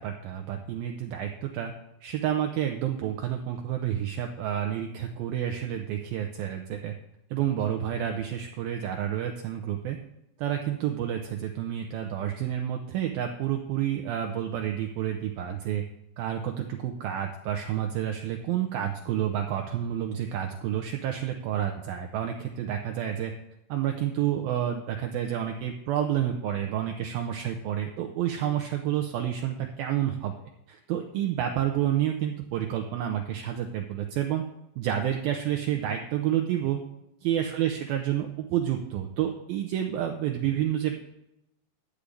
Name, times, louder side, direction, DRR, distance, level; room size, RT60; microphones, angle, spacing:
voice 1, 0.0-1.7 2.0-6.9 7.3-10.0 10.4-15.8 16.2-23.3 23.7-30.3 30.7-34.4 34.8-36.8 37.2-41.0, right 10 dB, 80° right, 4 dB, 2.2 m, -29 dB
11.5 x 5.1 x 8.4 m, 0.86 s
omnidirectional pair, 5.1 m